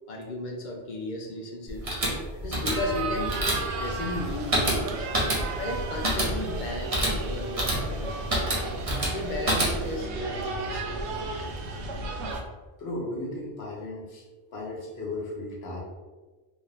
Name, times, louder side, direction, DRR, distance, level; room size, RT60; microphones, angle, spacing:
voice 1, 0.1-1.9 2.4-4.9 5.6-8.2 9.1-10.9, left 2 dB, 55° left, 2 dB, 0.6 m, -34 dB
sound 1, 1.7-10.0, right 1 dB, 35° right, 0.9 m, -28 dB
voice 2, 2.3-2.6 12.8-14.3 14.5-15.8, left 2 dB, 75° left, -3 dB, 1.2 m, -36 dB
sound 2, 2.7-12.4, right 2 dB, 85° right, 0.9 m, -34 dB
3.6 x 2.5 x 3.3 m, 1.3 s
omnidirectional pair, 1.1 m